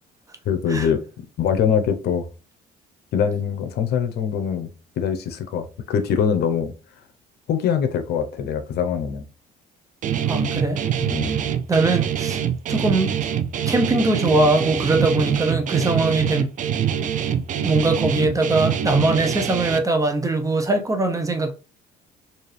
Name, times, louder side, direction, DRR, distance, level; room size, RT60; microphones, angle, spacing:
voice 1, 0.4-1.0 1.4-2.3 3.1-4.7 5.0-6.7 7.5-9.3 11.1-11.5, left 7 dB, 70° left, 0.8 m, -23 dB
Guitar, 10.0-19.8, right 9 dB, 50° right, 0.5 m, -24 dB
voice 2, 10.3-10.8 11.7-12.4 12.7-13.2 13.7-16.5 17.6-21.5, right 2 dB, 20° right, 0.8 m, -21 dB
4.4 x 2.6 x 3.3 m
cardioid pair, 110°, 17 cm